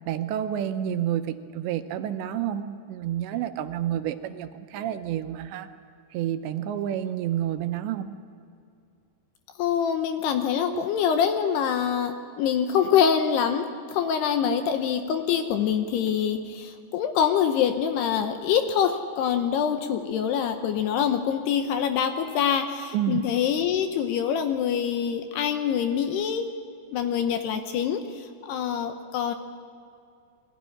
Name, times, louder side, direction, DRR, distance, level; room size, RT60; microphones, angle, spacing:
voice 1, 0.1-5.7 6.1-8.1 10.7-10.8 14.4-14.6 22.9-23.2, right 11 dB, 80° right, 9 dB, 2.9 m, -29 dB
voice 2, 9.6-26.5 26.9-29.3, left 8 dB, 75° left, 7 dB, 2.7 m, -25 dB
21.5 x 16.0 x 9.9 m, 2.4 s
omnidirectional pair, 5.4 m